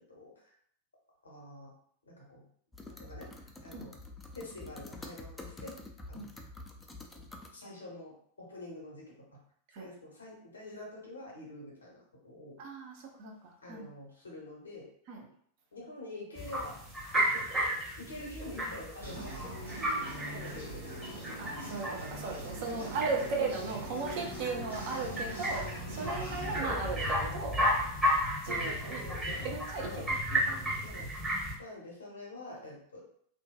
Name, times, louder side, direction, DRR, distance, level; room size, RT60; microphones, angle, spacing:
voice 1, 0.1-0.5 1.2-1.7 2.1-2.5 3.0-3.3 3.6-3.9 4.3-5.7 6.1-6.3 7.1-7.2 7.5-9.4 9.8-12.6 13.6-14.9 15.7-16.8 17.3-17.4 18.0-19.4 20.3-21.0 22.7-23.3 28.4-29.5 29.8-30.1 30.8-31.1 31.6-33.0, left 2 dB, 75° left, -2 dB, 0.8 m, -46 dB
sound 1, 2.7-7.5, left 2 dB, 10° left, 0.3 m, -47 dB
voice 2, 12.6-13.9 15.1-15.2 19.2-19.3 21.4-27.6 28.4-29.0 29.4-30.8, right 4 dB, 45° right, 0 dB, 0.6 m, -37 dB
sound 2, 16.4-31.5, equal, 10° right, 0.9 m, -34 dB
sound 3, 19.0-26.6, right 1 dB, 80° right, 0.7 m, -43 dB
2.5 x 2.2 x 2.2 m, 0.63 s
figure-of-eight pair, 90°, 0 cm